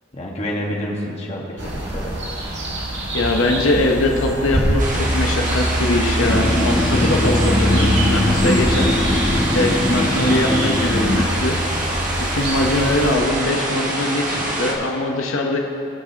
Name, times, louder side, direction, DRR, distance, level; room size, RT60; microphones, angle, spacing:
voice 1, 0.1-2.1, equal, 30° left, -3 dB, 1.5 m, -28 dB
sound 1, 1.6-13.2, right 1 dB, 60° right, 1.9 m, -24 dB
voice 2, 3.1-8.9 9.5-11.6 12.3-15.6, left 2 dB, 85° left, 1 dB, 0.9 m, -21 dB
sound 2, 4.8-14.7, right 1 dB, 40° right, 1.4 m, -25 dB
sound 3, 6.2-11.3, left 1 dB, 15° left, 0.4 m, -21 dB
18.0 x 7.4 x 2.9 m, 2.7 s
head